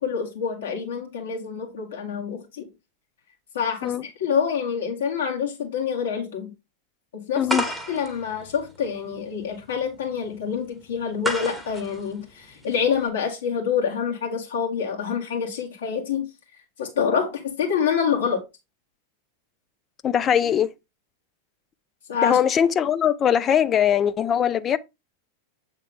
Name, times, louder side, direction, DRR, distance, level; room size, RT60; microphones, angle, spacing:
voice 1, 0.0-2.7 3.5-3.9 4.2-6.5 7.1-7.5 7.9-16.3 16.8-18.4 22.1-22.4, left 7 dB, 65° left, 2.0 m, -26 dB
sound 1, 7.5-13.1, equal, ahead, 1.2 m, -33 dB
voice 2, 20.0-20.7 22.2-24.8, left 9 dB, 25° left, 0.3 m, -21 dB
7.7 x 3.6 x 3.6 m
figure-of-eight pair, 90°, 0 cm